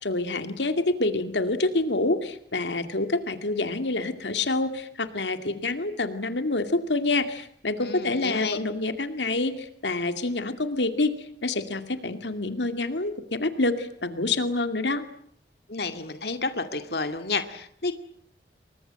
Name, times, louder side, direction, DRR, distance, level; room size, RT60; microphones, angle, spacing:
voice 1, 0.0-15.0, left 2 dB, 85° left, 9 dB, 2.4 m, -27 dB
voice 2, 7.8-8.6 15.7-17.9, left 3 dB, 60° left, 8 dB, 2.3 m, -30 dB
29.0 x 24.0 x 7.7 m, 0.65 s
head